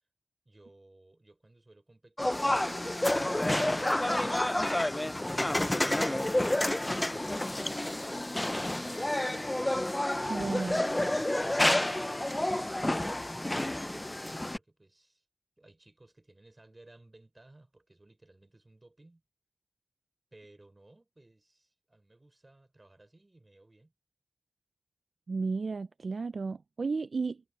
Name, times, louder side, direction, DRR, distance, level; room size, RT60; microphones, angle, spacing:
voice 1, 0.4-2.5 7.1-9.5 10.4-10.8 11.2-15.2 15.6-19.2 20.3-23.9, right 2 dB, 25° right, 4.0 m, -59 dB
sound 1, 2.2-14.6, left 1 dB, 15° left, 0.4 m, -29 dB
voice 2, 10.3-10.8 25.3-27.4, right 4 dB, 60° right, 0.3 m, -33 dB
wide cardioid pair, 115°, 0 cm